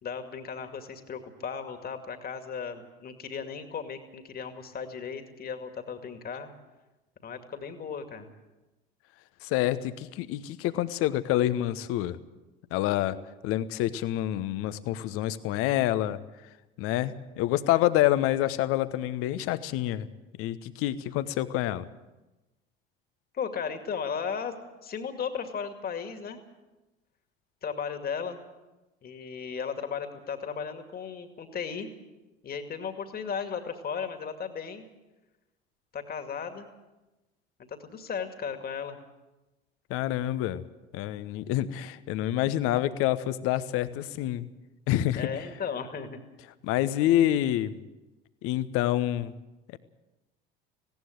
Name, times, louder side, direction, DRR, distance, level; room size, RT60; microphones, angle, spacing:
voice 1, 0.0-6.5 7.2-8.3 23.3-24.6 24.8-26.4 27.6-28.4 29.0-31.9 32.4-34.9 35.9-36.7 37.8-39.0 45.1-46.2, left 6 dB, 30° left, 7 dB, 2.3 m, -35 dB
voice 2, 9.4-12.2 12.7-13.2 13.4-16.2 16.8-20.1 20.4-21.9 39.9-40.6 40.9-44.5 44.9-45.3 46.6-47.8 48.4-49.3, left 13 dB, 50° left, 14 dB, 1.1 m, -27 dB
19.0 x 17.5 x 7.9 m, 1.0 s
figure-of-eight pair, 65°, 29 cm